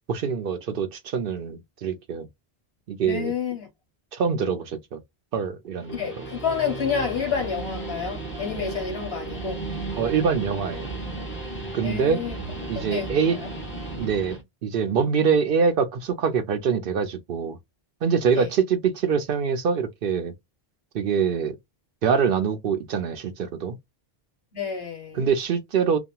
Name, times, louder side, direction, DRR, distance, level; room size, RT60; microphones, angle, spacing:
voice 1, 0.1-2.3 2.9-3.3 4.1-5.0 5.3-6.2 10.0-10.9 11.7-12.2 12.7-13.4 14.0-17.6 18.0-20.3 20.9-21.6 22.0-23.8 25.1-26.0, right 6 dB, 65° right, 0.7 m, -24 dB
voice 2, 3.0-3.7 5.9-9.6 11.8-12.4 12.7-13.1 18.3-18.5 24.5-25.3, left 7 dB, 70° left, 1.4 m, -29 dB
Guitar, 5.7-14.4, right 2 dB, 10° left, 0.9 m, -34 dB
2.8 x 2.4 x 2.2 m
omnidirectional pair, 1.1 m